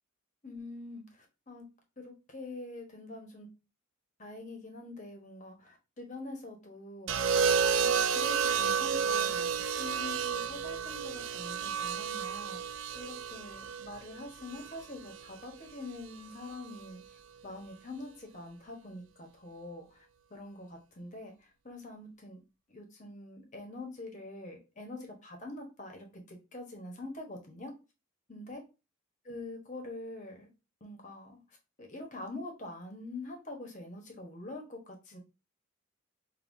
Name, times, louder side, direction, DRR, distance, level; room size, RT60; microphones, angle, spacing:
voice 1, 0.4-1.6 2.0-3.5 4.2-22.4 22.7-27.7 28.3-28.6 29.2-30.5 30.8-31.4 31.8-35.2, left 2 dB, 35° left, 3 dB, 1.1 m, -45 dB
sound 1, 7.1-15.2 16.5-16.8, right 7 dB, 65° right, 0.4 m, -31 dB
5.5 x 2.7 x 2.6 m, 0.29 s
head